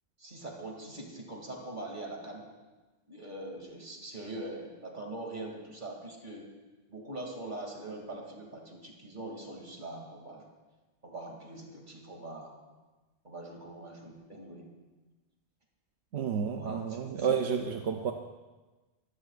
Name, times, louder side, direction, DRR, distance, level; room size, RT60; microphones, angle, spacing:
voice 1, 0.2-2.4 3.1-6.5 6.9-10.4 11.0-12.5 13.2-14.7 16.5-17.3 17.9-18.1, right 2 dB, 45° right, 0 dB, 2.8 m, -42 dB
voice 2, 16.1-18.1, right 7 dB, 85° right, 4 dB, 1.0 m, -30 dB
24.0 x 16.0 x 2.5 m, 1.2 s
omnidirectional pair, 1.1 m